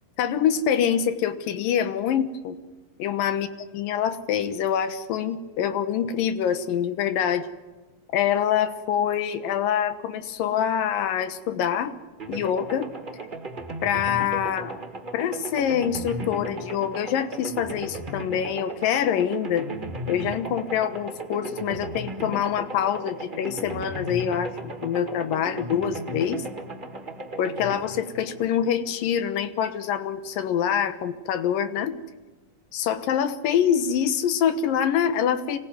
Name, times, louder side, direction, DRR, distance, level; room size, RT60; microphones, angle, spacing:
voice 1, 0.2-2.6 3.0-3.5 3.7-7.5 8.1-11.9 12.3-12.9 13.8-14.8 15.1-19.7 20.1-26.5 27.4-32.0 32.7-35.6, left 9 dB, 85° left, 10 dB, 3.0 m, -25 dB
sound 1, 12.2-29.1, right 1 dB, 20° right, 1.3 m, -36 dB
26.0 x 19.5 x 9.4 m, 1.2 s
omnidirectional pair, 3.8 m